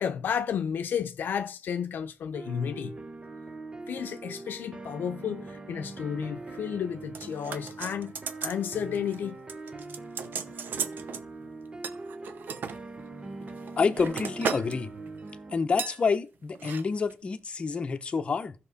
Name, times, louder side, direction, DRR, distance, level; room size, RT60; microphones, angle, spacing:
voice 1, 0.0-3.0 3.9-8.1 8.4-9.4, left 8 dB, 75° left, 0.7 m, -32 dB
sound 1, 2.3-15.5, right 3 dB, 25° right, 0.7 m, -42 dB
sound 2, 7.1-8.6 8.9-9.2 9.5-11.2 11.8-12.8 13.4-14.8 15.0-15.3 15.8-16.0 16.5-16.8 17.1-17.2, right 6 dB, 70° right, 0.9 m, -35 dB
voice 2, 13.8-14.9 15.5-18.5, left 5 dB, 35° left, 0.8 m, -28 dB
15.5 x 5.9 x 4.1 m
wide cardioid pair, 170°, 3 cm